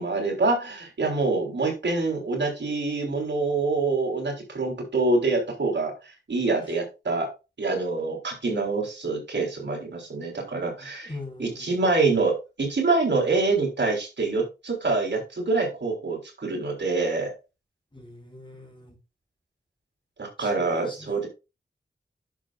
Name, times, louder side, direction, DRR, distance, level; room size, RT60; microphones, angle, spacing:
voice 1, 0.0-5.9 6.3-7.3 7.6-11.1 11.4-17.3 20.2-21.3, right 3 dB, 75° right, 1 dB, 4.0 m, -26 dB
voice 2, 11.0-11.7 17.9-18.9 20.4-21.3, left 2 dB, 25° left, -1 dB, 4.8 m, -42 dB
10.0 x 6.9 x 2.5 m, 0.28 s
wide cardioid pair, 85°, 19 cm